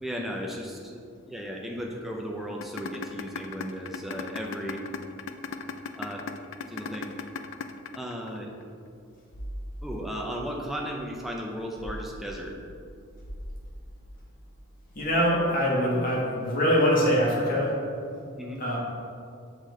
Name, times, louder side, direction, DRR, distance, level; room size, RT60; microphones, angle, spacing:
voice 1, 0.0-4.8 6.0-6.3 6.7-7.1 7.9-8.5 9.8-12.5 18.4-18.7, equal, ahead, -1 dB, 0.5 m, -35 dB
sound 1, 2.6-8.6, left 6 dB, 60° left, 0.3 m, -35 dB
voice 2, 14.9-17.8 18.6-18.8, equal, 40° left, -5 dB, 1.4 m, -23 dB
5.8 x 5.1 x 3.8 m, 2.4 s
head